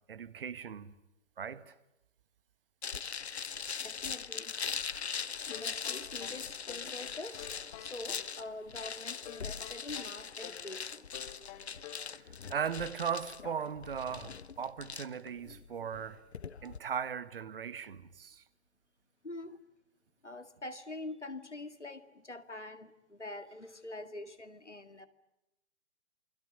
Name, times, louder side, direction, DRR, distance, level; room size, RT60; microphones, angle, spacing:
voice 1, 0.1-0.9 1.4-1.7 12.1-12.2 12.5-16.2 16.6-18.4, right 7 dB, 50° right, 1.7 m, -38 dB
sound 1, 2.8-16.8, left 6 dB, 65° left, 1.1 m, -41 dB
voice 2, 3.8-4.6 5.4-7.5 7.8-11.1 19.2-19.6 20.2-25.1, left 2 dB, 90° left, 2.2 m, -45 dB
sound 2, 5.5-7.0 7.4-8.3 9.3-10.7 11.1-12.1, left 11 dB, 20° left, 2.9 m, -49 dB
28.5 x 22.0 x 9.2 m
figure-of-eight pair, 130°, 34 cm